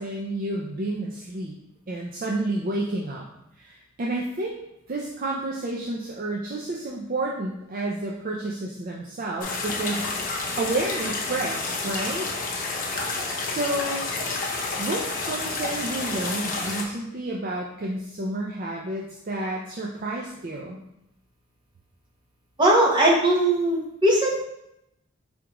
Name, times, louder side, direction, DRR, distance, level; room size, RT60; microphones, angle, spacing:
voice 1, 0.0-1.6 1.9-3.2 3.6-4.6 4.9-10.0 10.6-12.3 13.5-14.1 14.8-20.8, right 2 dB, 40° right, -2 dB, 0.4 m, -30 dB
sound 1, 9.4-16.8, left 3 dB, 40° left, 0.7 m, -30 dB
voice 2, 22.6-24.4, right 1 dB, 20° right, -3 dB, 0.9 m, -19 dB
4.9 x 3.5 x 3.0 m, 0.83 s
head